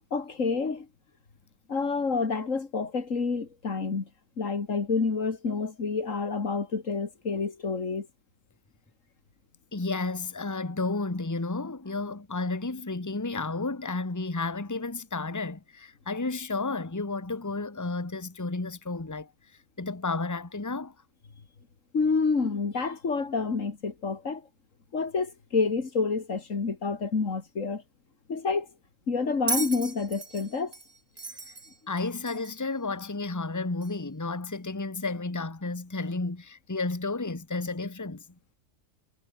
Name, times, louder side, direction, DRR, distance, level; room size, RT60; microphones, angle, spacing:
voice 1, 0.1-0.9 1.7-4.0 4.4-8.1 21.9-24.4 24.9-27.8 28.3-28.7 29.1-30.7, left 4 dB, 80° left, 2.7 m, -28 dB
voice 2, 9.7-19.3 19.8-20.9 31.9-38.2, left 3 dB, 15° left, 1.4 m, -32 dB
Bell, 29.5-32.7 33.8-33.9, right 4 dB, 55° right, 2.6 m, -35 dB
omnidirectional pair, 1.3 m